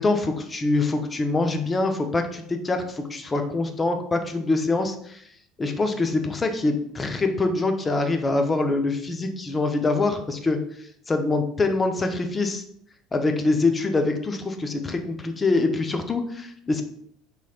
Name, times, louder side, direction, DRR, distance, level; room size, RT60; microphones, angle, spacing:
voice 1, 0.0-5.2 5.6-10.6 11.1-12.6 13.1-16.8, left 3 dB, 25° left, 5 dB, 0.5 m, -24 dB
3.1 x 2.9 x 2.4 m, 0.65 s
hypercardioid pair, 65°, 0 cm